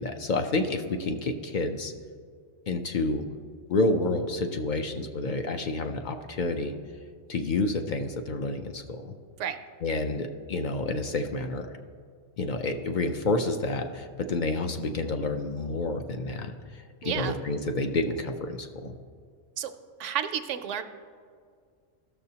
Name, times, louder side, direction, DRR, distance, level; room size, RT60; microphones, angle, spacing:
voice 1, 0.0-1.9 2.7-3.2 3.7-6.7 7.3-9.1 9.8-11.7 12.4-16.5 17.0-18.9, left 2 dB, 55° left, 5 dB, 0.5 m, -29 dB
voice 2, 17.0-17.4 19.6-19.7 20.0-20.8, right 9 dB, 70° right, 9 dB, 0.9 m, -31 dB
15.5 x 6.7 x 2.8 m, 2.1 s
omnidirectional pair, 1.3 m